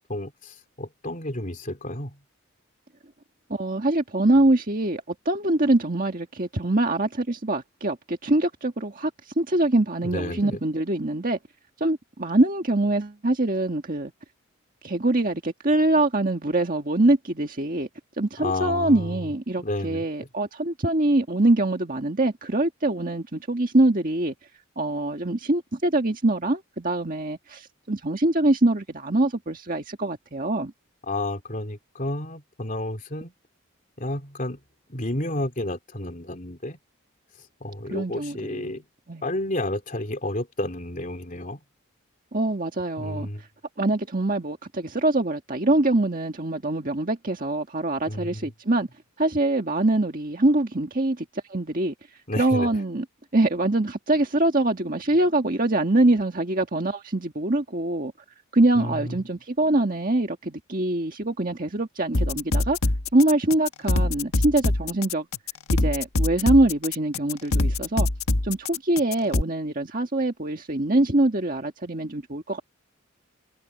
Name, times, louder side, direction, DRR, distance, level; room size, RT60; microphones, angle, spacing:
voice 1, 0.1-2.2 10.0-10.6 18.4-19.2 19.6-20.0 31.1-33.3 34.0-34.6 34.9-36.8 37.6-38.8 39.2-41.6 43.0-43.4 48.0-48.5 52.3-52.7 58.7-59.2, left 1 dB, 40° left, 3.3 m, -31 dB
voice 2, 3.5-9.1 9.4-11.4 11.8-14.1 14.8-17.9 18.2-24.3 24.8-30.7 37.9-38.6 39.1-39.2 42.3-43.3 43.8-48.9 49.2-51.9 52.4-53.0 53.3-58.1 58.5-62.8 63.1-65.3 65.8-68.1 68.4-72.6, right 2 dB, 40° right, 1.8 m, -24 dB
sound 1, 62.1-69.4, left 2 dB, 85° left, 1.4 m, -24 dB
head